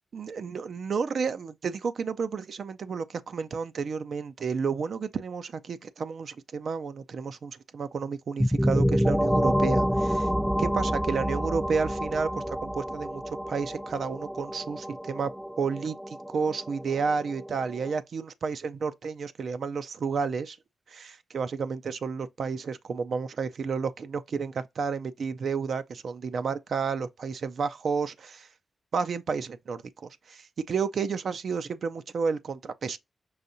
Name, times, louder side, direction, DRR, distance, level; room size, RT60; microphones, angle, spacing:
voice 1, 0.1-10.3 10.6-15.3 15.6-20.6 20.9-28.5 28.9-33.0, right 5 dB, 70° right, 0.4 m, -31 dB
sound 1, 8.4-18.0, equal, ahead, 0.3 m, -28 dB
5.5 x 2.7 x 2.6 m
supercardioid pair, 50°, 0 cm